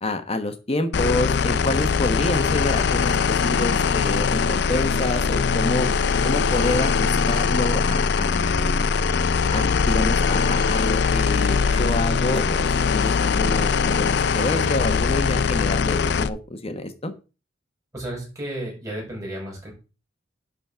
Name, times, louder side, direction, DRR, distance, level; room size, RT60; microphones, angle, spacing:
voice 1, 0.0-5.9 6.2-8.8 9.5-12.6 12.9-17.1, left 2 dB, 35° left, 8 dB, 1.2 m, -27 dB
sound 1, 0.9-16.3, left 5 dB, 65° left, 0.5 m, -21 dB
voice 2, 17.9-19.7, right 1 dB, 20° right, -2 dB, 5.4 m, -33 dB
10.5 x 4.1 x 5.7 m, 0.32 s
head